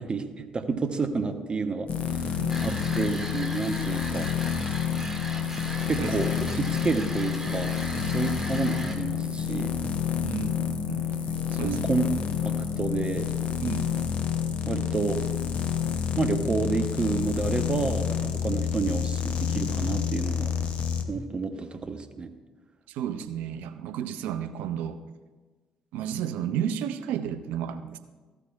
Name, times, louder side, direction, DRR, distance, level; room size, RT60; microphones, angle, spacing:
voice 1, 0.0-4.3 5.9-7.7 8.0-9.7 11.5-12.1 12.4-13.3 14.6-15.2 16.2-20.5 21.1-22.3, right 4 dB, 35° right, 8 dB, 0.9 m, -30 dB
sound 1, 1.9-21.0, left 8 dB, 45° left, 0.7 m, -29 dB
voice 2, 2.4-3.0 6.0-6.2 8.0-8.4 10.2-11.1 11.5-11.9 13.6-13.9 22.9-25.0 25.9-28.0, right 9 dB, 65° right, 11 dB, 0.5 m, -33 dB
sound 2, 2.5-9.0, right 1 dB, 10° right, 1.7 m, -39 dB
14.5 x 8.3 x 2.4 m, 1.3 s
figure-of-eight pair, 45°, 3 cm